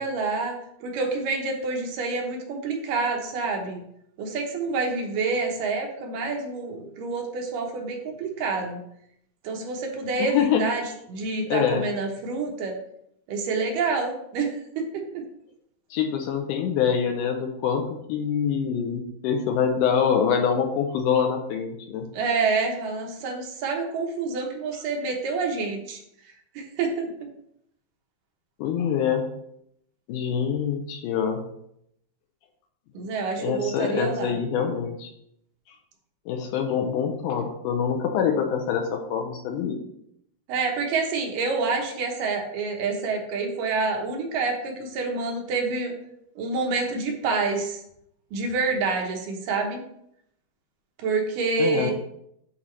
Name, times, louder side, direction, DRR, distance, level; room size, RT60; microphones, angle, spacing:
voice 1, 0.0-3.8 4.2-8.8 9.4-12.7 13.3-15.3 22.1-26.0 26.6-27.1 32.9-34.3 40.5-46.0 46.4-47.8 48.3-49.8 51.0-51.9, right 4 dB, 75° right, 2 dB, 2.5 m, -27 dB
voice 2, 10.2-10.7 11.5-11.9 15.9-22.1 28.6-29.3 30.1-31.5 33.4-35.1 35.7-35.8 36.3-39.8 51.6-51.9, left 7 dB, 80° left, 4 dB, 2.0 m, -25 dB
8.7 x 4.1 x 3.1 m, 0.75 s
omnidirectional pair, 4.0 m